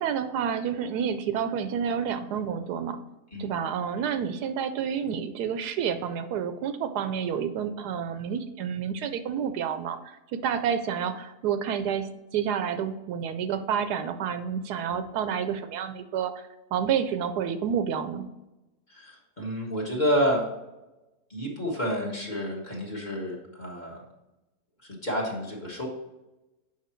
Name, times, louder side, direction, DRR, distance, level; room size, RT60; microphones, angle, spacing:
voice 1, 0.0-3.0 3.4-18.3, right 8 dB, 80° right, 10 dB, 1.1 m, -29 dB
voice 2, 18.9-20.4 21.3-24.0 24.8-25.9, equal, 30° left, -3 dB, 1.6 m, -29 dB
7.4 x 5.5 x 4.4 m, 1.0 s
omnidirectional pair, 1.7 m